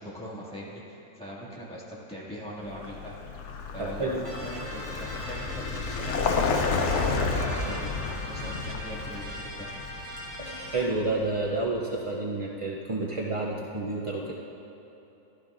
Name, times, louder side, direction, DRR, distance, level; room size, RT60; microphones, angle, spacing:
voice 1, 0.0-3.2 3.7-6.2 6.8-9.7, equal, 5° left, -8 dB, 2.0 m, -40 dB
Vehicle, 2.7-11.5, left 4 dB, 60° left, 0.9 m, -31 dB
voice 2, 3.8-4.2 10.3-14.3, right 2 dB, 50° right, -3 dB, 0.3 m, -30 dB
sound 1, 4.2-10.8, equal, 85° right, 2.2 m, -41 dB
15.0 x 12.0 x 2.5 m, 3.0 s
omnidirectional pair, 1.6 m